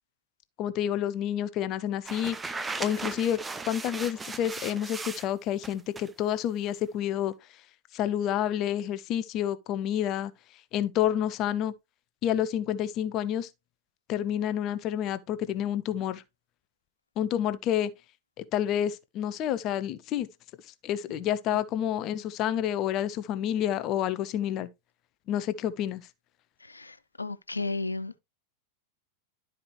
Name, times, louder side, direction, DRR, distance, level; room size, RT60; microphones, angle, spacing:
voice 1, 0.6-2.4 2.8-3.4 3.7-7.3 7.9-10.3 10.7-11.7 12.2-13.5 14.1-16.2 17.2-17.9 18.4-20.3 20.8-24.7 25.3-26.0, left 10 dB, 35° left, 0.6 m, -29 dB
sound 1, 2.0-5.3 5.6-6.1, right 3 dB, 10° right, 0.7 m, -37 dB
voice 2, 26.7-28.1, left 3 dB, 80° left, 0.5 m, -33 dB
11.5 x 4.9 x 3.0 m
figure-of-eight pair, 90°, 0 cm